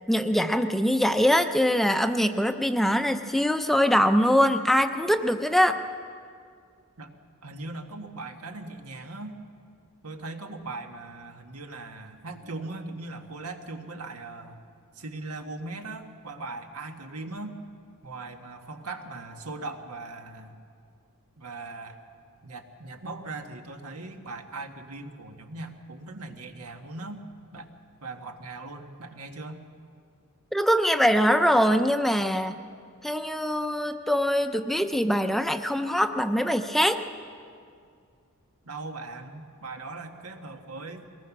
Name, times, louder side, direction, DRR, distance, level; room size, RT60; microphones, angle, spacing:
voice 1, 0.1-5.8 30.5-32.6 33.0-37.0, equal, ahead, 8 dB, 0.6 m, -23 dB
voice 2, 7.4-9.4 10.0-14.6 14.9-17.6 18.0-20.6 21.4-22.0 22.4-27.2 27.5-27.7 28.0-29.6 38.6-41.1, right 3 dB, 85° right, 4 dB, 1.7 m, -39 dB
22.5 x 19.0 x 6.1 m, 2.3 s
head